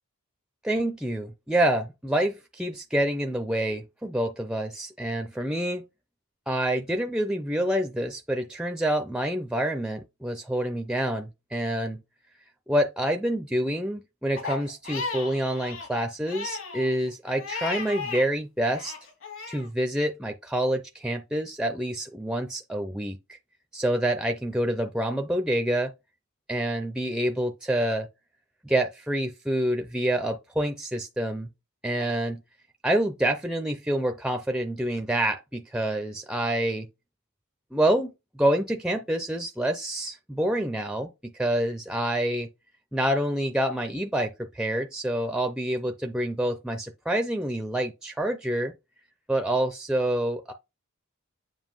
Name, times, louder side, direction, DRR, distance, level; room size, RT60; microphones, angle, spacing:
voice 1, 0.6-5.8 6.5-12.0 12.7-18.9 19.5-23.4 23.7-25.9 26.5-28.1 28.6-31.5 31.8-32.4 32.8-36.9 37.7-38.1 38.4-42.5 42.9-48.7 49.3-50.5, right 1 dB, 5° right, 0.5 m, -27 dB
Crying sobbing, 14.4-18.3 18.6-19.7, left 4 dB, 60° left, 2.0 m, -35 dB
7.3 x 2.6 x 5.5 m
head